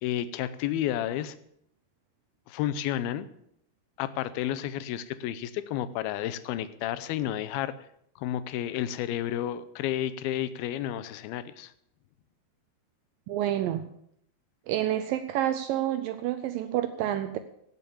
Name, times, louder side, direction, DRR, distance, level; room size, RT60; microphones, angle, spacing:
voice 1, 0.0-1.4 2.5-3.3 4.0-7.7 8.2-11.7, left 11 dB, 80° left, 13 dB, 2.5 m, -31 dB
voice 2, 13.3-13.9 14.7-17.4, right 12 dB, 80° right, 10 dB, 2.1 m, -28 dB
17.0 x 6.9 x 7.0 m, 0.70 s
omnidirectional pair, 4.6 m